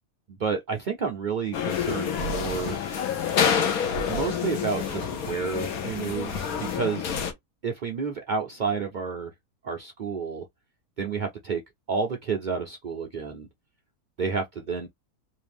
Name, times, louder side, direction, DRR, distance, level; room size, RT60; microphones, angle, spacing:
voice 1, 0.4-2.8 3.9-7.2 7.6-9.3 9.6-10.4 11.0-11.6 11.9-13.5 14.2-14.9, right 5 dB, 70° right, 0.4 m, -30 dB
sound 1, 1.5-7.3, left 7 dB, 70° left, 1.2 m, -28 dB
sound 2, 1.7-6.8, left 3 dB, 50° left, 1.2 m, -40 dB
3.3 x 2.7 x 3.4 m
omnidirectional pair, 1.7 m